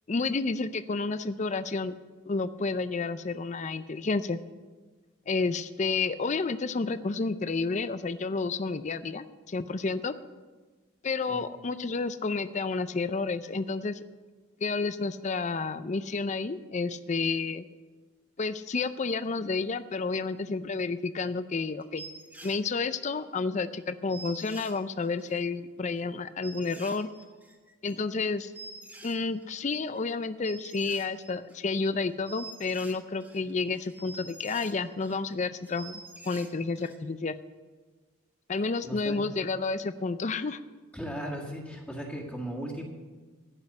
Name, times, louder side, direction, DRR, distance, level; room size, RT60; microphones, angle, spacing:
voice 1, 0.1-1.9 2.3-4.4 5.3-10.1 11.0-14.0 14.6-17.6 18.4-22.0 22.4-27.1 27.8-28.5 29.0-37.3 38.5-40.6, left 4 dB, 35° left, 12 dB, 0.4 m, -30 dB
sound 1, 21.3-21.4 21.8-22.6 23.2-23.3 23.5-23.6 23.8-23.9 24.1-25.4 25.9-26.0 26.4-29.6 29.9-30.1 30.4-31.8 32.1-35.3 35.6-37.0 37.2-37.3, right 3 dB, 10° right, 1.3 m, -47 dB
voice 2, 38.8-39.2 40.9-42.8, equal, 10° left, -4 dB, 1.9 m, -37 dB
15.0 x 6.4 x 8.0 m, 1.3 s
head